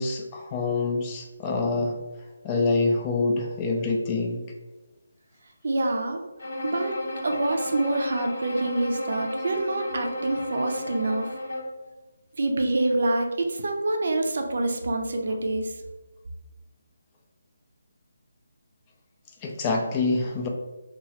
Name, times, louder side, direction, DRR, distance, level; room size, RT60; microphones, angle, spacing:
voice 1, 0.0-2.0 2.4-4.5 19.4-20.5, left 3 dB, 20° left, 1 dB, 0.3 m, -26 dB
voice 2, 5.6-6.2 6.6-6.9 7.2-11.3 12.4-15.7, right 2 dB, 60° right, 3 dB, 0.4 m, -26 dB
Bowed string instrument, 6.4-11.8, left 1 dB, 65° left, 0.7 m, -33 dB
2.8 x 2.3 x 2.9 m, 1.1 s
figure-of-eight pair, 165°, 0 cm